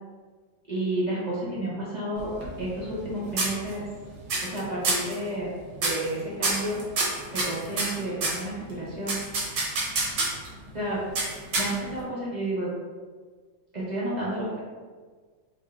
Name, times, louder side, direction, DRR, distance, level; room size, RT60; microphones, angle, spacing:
voice 1, 0.7-2.3 2.6-3.8 4.4-5.5 5.8-6.8 7.3-9.2 10.7-11.0 11.6-12.7 13.7-14.6, right 1 dB, 55° right, -8 dB, 0.4 m, -31 dB
sound 1, 2.2-3.1 3.4-4.0 4.3-4.6 4.8-5.1 5.8-6.1 6.4-8.4 9.1-10.5 11.2-12.0, right 2 dB, 70° right, 1.6 m, -27 dB
5.2 x 2.0 x 3.5 m, 1.5 s
omnidirectional pair, 2.0 m